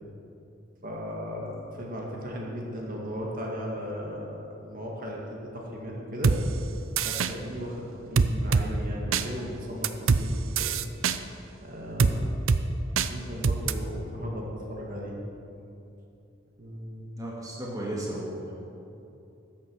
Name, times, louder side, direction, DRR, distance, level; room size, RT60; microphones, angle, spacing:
voice 1, 0.8-6.3 7.0-10.8 11.6-12.4 13.1-15.2 16.6-17.1, equal, 45° right, -2 dB, 2.0 m, -36 dB
sound 1, 6.2-6.4 7.0-7.3 8.2-8.7 9.1-9.2 9.8-10.2 10.6-11.2 12.0-12.1 12.5-12.6 13.0-13.1 13.4-13.7, right 5 dB, 85° right, 0.6 m, -23 dB
voice 2, 17.2-18.5, right 1 dB, 20° right, -4 dB, 1.9 m, -34 dB
13.5 x 8.5 x 6.2 m, 2.8 s
head